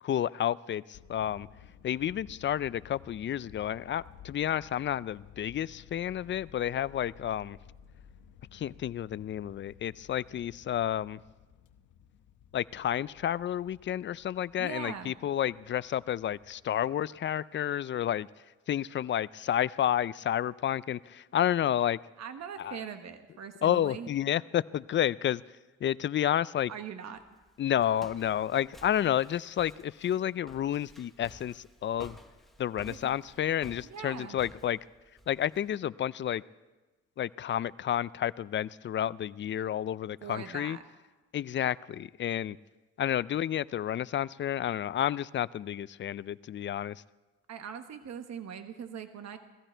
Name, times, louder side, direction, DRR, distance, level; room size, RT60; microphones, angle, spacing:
voice 1, 0.0-1.5 1.8-7.6 8.5-11.2 12.5-18.3 18.7-22.0 22.6-22.8 23.6-25.4 25.8-26.7 27.6-32.2 32.6-34.8 35.3-36.4 37.2-40.8 41.3-42.6 43.0-47.0, left 10 dB, 40° left, 20 dB, 0.4 m, -30 dB
sound 1, 0.9-17.1, left 8 dB, 90° left, 1.0 m, -56 dB
voice 2, 14.6-15.1 22.2-24.1 26.7-27.2 32.9-33.2 33.8-34.4 40.2-40.8 47.5-49.4, right 7 dB, 60° right, 8 dB, 1.3 m, -41 dB
Walk footsteps, 27.1-35.8, equal, ahead, 1.2 m, -53 dB
18.0 x 14.5 x 4.5 m, 1.2 s
cardioid pair, 90°, 30 cm